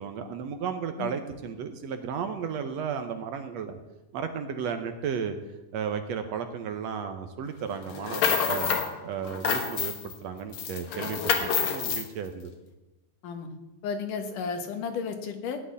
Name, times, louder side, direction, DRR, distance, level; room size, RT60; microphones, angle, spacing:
voice 1, 0.0-3.8 4.1-5.4 5.7-12.5, right 7 dB, 70° right, 7 dB, 1.8 m, -34 dB
sound 1, 7.9-8.9 9.2-10.2 10.5-12.1, left 6 dB, 55° left, 1.6 m, -27 dB
voice 2, 13.8-15.6, left 5 dB, 85° left, 6 dB, 3.0 m, -33 dB
16.0 x 6.0 x 9.7 m, 1.1 s
omnidirectional pair, 3.6 m